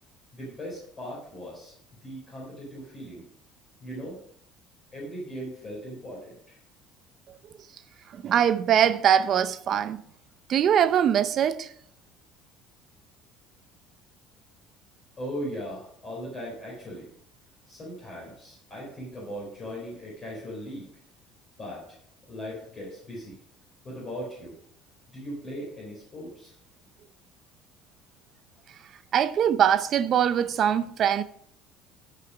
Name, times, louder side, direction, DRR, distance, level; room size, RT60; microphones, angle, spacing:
voice 1, 0.3-1.7 2.0-3.2 3.8-4.2 4.9-6.6 15.2-17.1 17.7-20.8 21.6-22.0 22.3-23.4 23.8-24.5 25.1-26.5, equal, 25° left, 4.5 m, -38 dB
voice 2, 8.1-10.0 10.5-11.7 29.1-31.2, right 9 dB, 40° right, 0.6 m, -22 dB
14.0 x 5.8 x 5.1 m
cardioid pair, 150°, 0 cm